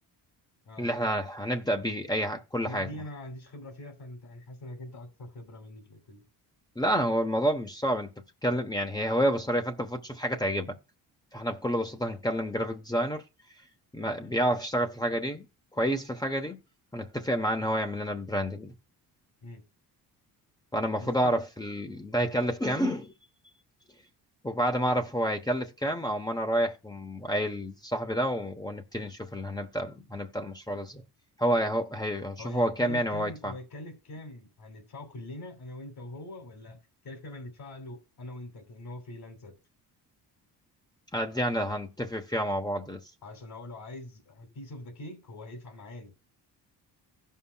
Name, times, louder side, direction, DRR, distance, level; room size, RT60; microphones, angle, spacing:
voice 1, 0.8-2.9 6.8-8.1 8.4-10.7 11.3-13.2 13.9-15.4 15.7-16.6 16.9-18.7 20.7-23.1 24.4-31.0 31.4-33.5 41.1-43.0, equal, 10° left, 0.9 m, -29 dB
voice 2, 2.6-6.2 19.4-19.6 21.0-21.4 32.4-36.8 37.0-39.6 43.2-46.1, left 1 dB, 70° left, 2.9 m, -43 dB
17.0 x 5.6 x 2.2 m
cardioid pair, 95°, 40 cm